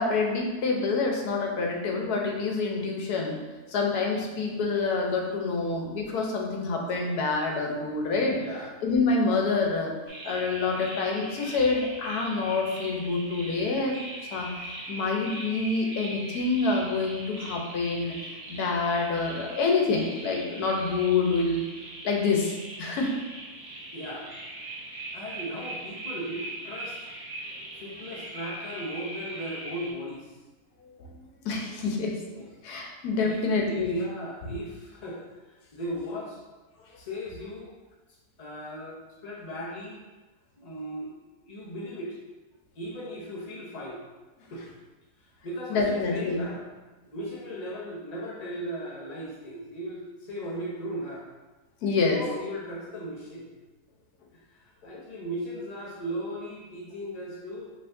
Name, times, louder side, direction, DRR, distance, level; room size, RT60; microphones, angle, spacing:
voice 1, 0.0-3.4 3.7-8.4 8.8-9.9 10.2-14.0 14.3-21.6 22.0-22.5 22.8-23.1 31.0-32.2 32.6-34.0 45.7-46.4 51.8-52.2 54.9-55.0, left 4 dB, 80° left, 0 dB, 1.3 m, -27 dB
voice 2, 8.3-8.8 23.9-24.3 25.1-27.0 27.7-30.3 32.3-32.5 33.2-35.2 35.5-36.4 37.0-37.7 38.4-40.0 40.6-41.1 41.4-42.2 42.8-44.0 44.5-44.7 45.4-46.6 47.0-51.2 52.1-53.5 54.3-57.7, equal, 55° left, -4 dB, 0.4 m, -37 dB
sound 1, 10.1-29.9, right 1 dB, 70° right, 1.3 m, -40 dB
5.6 x 3.2 x 2.6 m, 1.2 s
omnidirectional pair, 1.6 m